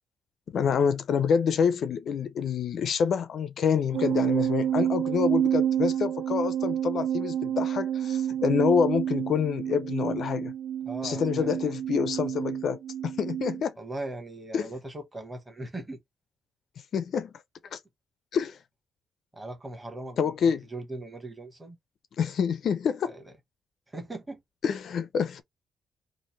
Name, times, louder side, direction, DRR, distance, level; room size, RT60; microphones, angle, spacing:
voice 1, 0.5-10.5 11.0-13.7 14.5-14.7 16.9-17.3 17.7-17.8 18.3-18.6 20.2-20.6 22.2-23.2 24.6-25.4, left 7 dB, 55° left, 0.4 m, -27 dB
sound 1, 3.9-13.6, right 10 dB, 75° right, 0.4 m, -29 dB
voice 2, 10.9-11.7 13.8-16.0 19.3-21.8 23.0-23.2 23.9-24.4, right 2 dB, 10° right, 1.0 m, -39 dB
3.1 x 2.5 x 4.1 m
wide cardioid pair, 170°, 0 cm